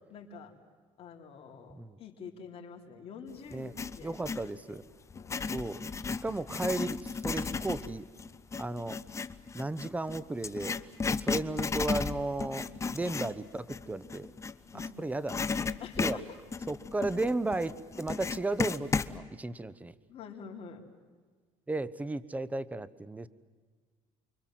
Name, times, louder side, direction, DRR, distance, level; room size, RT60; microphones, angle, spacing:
voice 1, 0.1-0.5 1.0-4.2 4.7-4.8 5.1-5.6 12.5-12.7 14.7-15.1 15.8-16.2 20.1-20.8, left 5 dB, 50° left, 2 dB, 3.6 m, -47 dB
Writing, 3.5-4.5 5.1-14.9 15.3-19.1, left 5 dB, 25° left, 0.9 m, -34 dB
voice 2, 4.0-4.8 5.5-5.8 6.1-8.1 8.5-9.0 9.5-10.8 11.2-14.3 14.7-15.7 16.0-16.2 16.7-19.9 21.7-23.3, right 2 dB, 10° right, 17 dB, 1.0 m, -34 dB
29.5 x 24.0 x 7.7 m, 1.5 s
cardioid pair, 105°, 13 cm